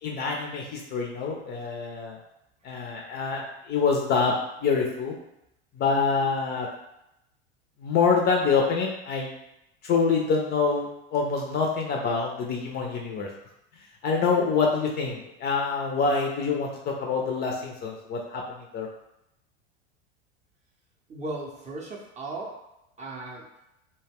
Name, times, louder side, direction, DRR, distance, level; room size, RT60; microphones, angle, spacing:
voice 1, 0.0-2.2 2.6-4.3 4.6-5.1 5.7-6.7 7.8-9.3 9.8-13.3 14.0-18.9, left 5 dB, 30° left, 0 dB, 0.5 m, -26 dB
voice 2, 21.1-22.7 23.0-23.5, right 2 dB, 20° right, -1 dB, 0.6 m, -36 dB
2.1 x 2.1 x 3.4 m, 0.86 s
hypercardioid pair, 90°, 31 cm